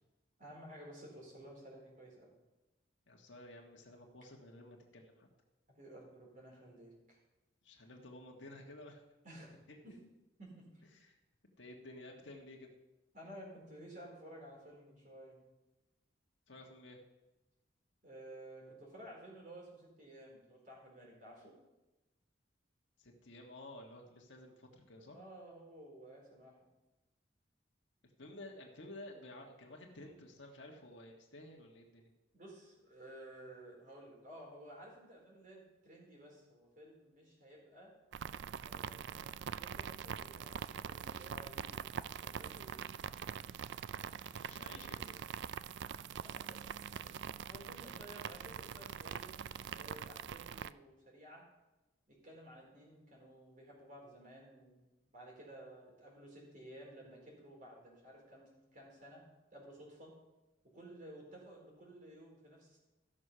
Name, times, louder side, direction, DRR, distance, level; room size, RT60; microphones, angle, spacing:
voice 1, 0.4-2.3 5.7-7.2 9.2-9.6 9.8-10.0 10.4-10.7 13.1-15.4 18.0-21.5 25.1-26.6 32.3-37.9 38.6-41.9 42.2-42.9 46.2-46.6 46.9-47.2 47.5-49.4 49.7-51.4 52.1-59.2 59.5-60.1 60.7-62.8, right 1 dB, 45° right, -3 dB, 4.1 m, -54 dB
voice 2, 3.1-5.3 7.6-9.0 9.7-10.0 10.9-11.2 11.6-12.7 16.5-17.0 23.0-25.2 28.0-32.1 44.3-45.2, left 1 dB, 75° left, 1 dB, 1.5 m, -53 dB
sound 1, 38.1-50.7, right 8 dB, 65° right, 0.3 m, -44 dB
14.5 x 6.3 x 5.6 m, 1.0 s
head